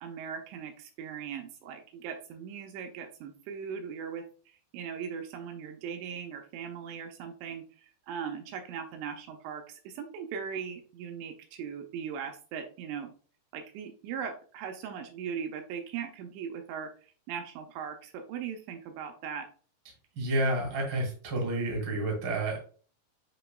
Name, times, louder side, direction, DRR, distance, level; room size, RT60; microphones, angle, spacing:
voice 1, 0.0-13.1 13.5-19.5, right 7 dB, 85° right, 5 dB, 2.6 m, -39 dB
voice 2, 20.1-22.6, right 1 dB, 55° right, -1 dB, 1.2 m, -30 dB
7.8 x 3.0 x 2.2 m, 0.42 s
omnidirectional pair, 5.2 m